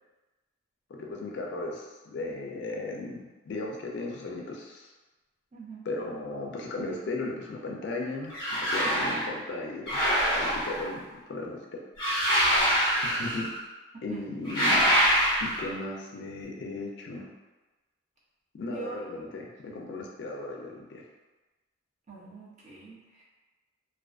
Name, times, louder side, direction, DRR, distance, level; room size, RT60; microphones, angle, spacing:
voice 1, 0.9-4.9 5.8-11.8 13.0-13.5 14.0-14.8 15.4-17.3 18.5-21.0, left 2 dB, 60° left, -1 dB, 0.3 m, -36 dB
voice 2, 5.5-5.9 13.9-14.2 14.6-14.8 18.7-19.0 22.1-23.2, right 5 dB, 35° right, -6 dB, 0.6 m, -43 dB
sound 1, 8.3-9.3 9.9-10.9 12.0-13.6 14.4-15.7, equal, 25° left, 0.8 m, -25 dB
2.3 x 2.3 x 2.3 m, 1.2 s
head